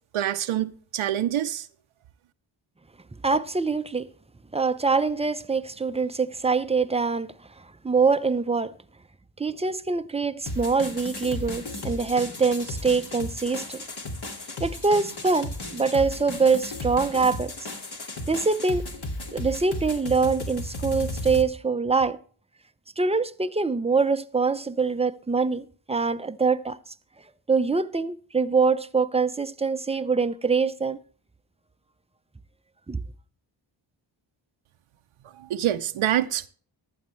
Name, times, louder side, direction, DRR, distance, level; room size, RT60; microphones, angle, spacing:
voice 1, 0.1-1.7 35.4-36.5, right 12 dB, 75° right, 0.7 m, -26 dB
voice 2, 3.2-4.1 4.5-8.7 9.4-13.8 14.6-17.5 18.3-18.9 19.3-22.2 23.0-26.8 27.5-31.0 32.9-33.0, right 4 dB, 15° right, 0.6 m, -24 dB
sound 1, 10.5-21.4, left 1 dB, 50° left, 2.3 m, -35 dB
15.0 x 11.0 x 3.2 m
cardioid pair, 70°, 49 cm